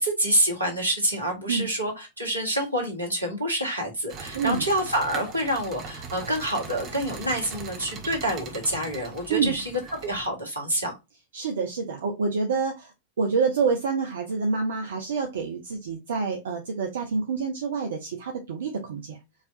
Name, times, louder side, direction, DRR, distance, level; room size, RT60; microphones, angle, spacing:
voice 1, 0.0-9.6 10.0-10.9, right 1 dB, 80° right, 2 dB, 1.8 m, -27 dB
sound 1, 4.1-10.3, right 4 dB, 35° right, 1.3 m, -40 dB
voice 2, 11.3-19.2, right 5 dB, 60° right, 3 dB, 0.8 m, -27 dB
4.9 x 3.3 x 2.6 m, 0.22 s
figure-of-eight pair, 90°, 0 cm